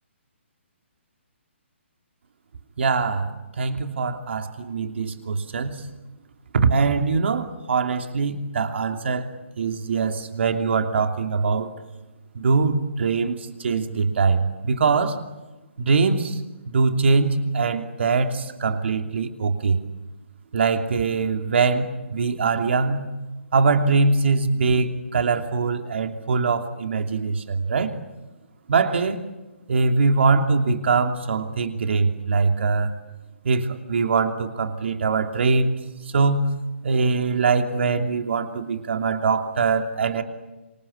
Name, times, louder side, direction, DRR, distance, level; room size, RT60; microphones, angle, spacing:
voice 1, 2.8-3.3 3.6-5.8 6.5-9.3 9.6-11.7 12.3-15.2 15.8-16.4 16.7-19.8 20.5-23.1 23.5-27.9 28.7-29.2 29.7-32.9 33.4-35.8 36.1-36.5 36.8-40.2, right 4 dB, 65° right, 6 dB, 2.9 m, -22 dB
27.0 x 25.0 x 8.6 m, 1.1 s
hypercardioid pair, 150°, 7 cm